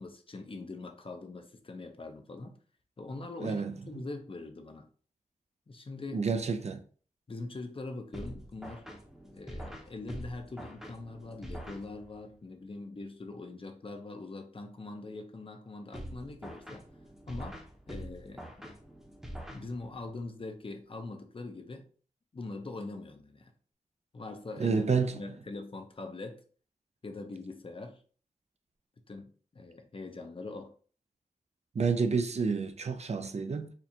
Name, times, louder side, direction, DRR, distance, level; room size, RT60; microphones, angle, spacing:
voice 1, 0.0-2.6 3.0-4.9 5.7-6.3 7.3-8.9 9.2-16.8 17.3-17.6 17.9-18.7 19.5-21.9 22.3-23.5 24.1-26.4 27.0-28.0 29.1-30.7, left 3 dB, 40° left, 0.6 m, -42 dB
voice 2, 3.4-3.8 6.1-6.8 24.6-25.2 31.7-33.7, right 5 dB, 55° right, 0.4 m, -29 dB
sound 1, 8.1-12.3 15.9-20.1, equal, 5° right, 0.7 m, -45 dB
4.4 x 2.4 x 2.7 m
wide cardioid pair, 95°, 14 cm